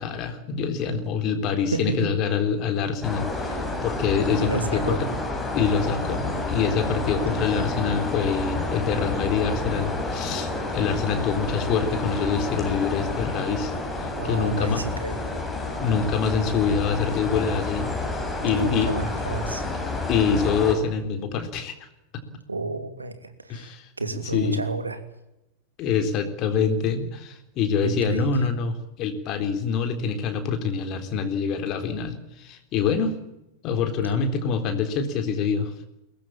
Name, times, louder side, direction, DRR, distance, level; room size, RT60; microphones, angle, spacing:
voice 1, 0.0-5.1 5.5-14.8 15.8-17.9 18.4-18.9 20.1-21.7 23.5-23.9 24.3-24.6 25.8-33.2 33.6-35.7, left 6 dB, 40° left, 7 dB, 3.8 m, -25 dB
voice 2, 1.7-2.1 4.3-5.0 14.2-15.4 18.4-19.6 22.5-25.0 27.8-28.3, right 3 dB, 80° right, 8 dB, 2.9 m, -30 dB
sound 1, 3.0-20.7, left 2 dB, 10° left, 7.6 m, -29 dB
22.5 x 19.5 x 8.7 m, 0.89 s
figure-of-eight pair, 90°, 0 cm